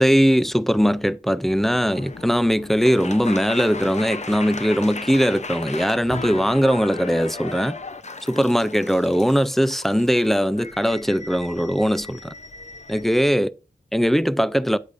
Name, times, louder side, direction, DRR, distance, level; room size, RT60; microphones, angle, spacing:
voice 1, 0.0-7.8 8.3-12.3 12.9-13.5 13.9-14.8, equal, ahead, 0.4 m, -20 dB
sound 1, 1.5-13.3, left 3 dB, 45° left, 0.7 m, -36 dB
8.3 x 8.2 x 2.6 m
wide cardioid pair, 75°, 17 cm